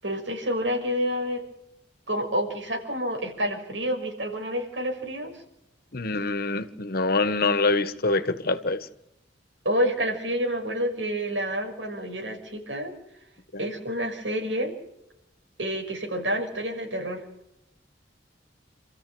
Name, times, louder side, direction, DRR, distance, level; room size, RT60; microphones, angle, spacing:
voice 1, 0.0-1.4 2.1-5.3 9.6-12.9 13.6-14.7 15.6-17.2, equal, 90° right, 6.0 m, -28 dB
voice 2, 5.9-8.9 13.5-13.7, left 3 dB, 55° left, 1.5 m, -25 dB
27.0 x 14.5 x 8.0 m
head